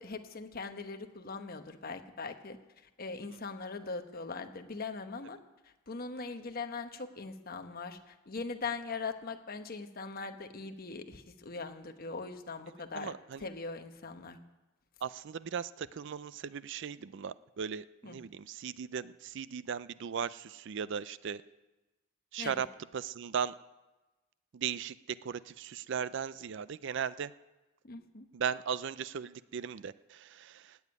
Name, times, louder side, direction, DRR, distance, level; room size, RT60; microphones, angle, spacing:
voice 1, 0.0-2.6 3.0-5.4 5.9-13.1 13.4-14.4 18.0-18.2 22.4-22.6 27.8-28.3, left 4 dB, 45° left, 7 dB, 1.1 m, -41 dB
voice 2, 12.9-13.5 15.0-21.4 22.3-22.7 22.9-23.5 24.5-27.3 28.3-30.8, right 7 dB, 60° right, 17 dB, 0.4 m, -37 dB
17.0 x 7.2 x 9.6 m, 1.1 s
head